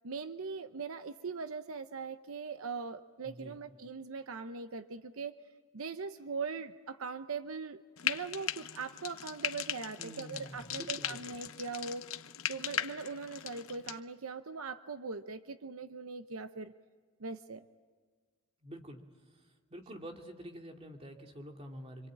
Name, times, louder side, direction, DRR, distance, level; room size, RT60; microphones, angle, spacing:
voice 1, 0.0-5.4 5.7-12.1 12.5-16.7 17.2-17.6, right 4 dB, 80° right, 10 dB, 0.8 m, -41 dB
voice 2, 3.2-3.6 10.0-11.2 18.6-19.0 19.7-22.1, equal, 25° right, 2 dB, 2.5 m, -47 dB
Frying (food), 8.0-14.0, left 10 dB, 75° left, 0.9 m, -39 dB
26.5 x 25.5 x 8.7 m, 1.5 s
head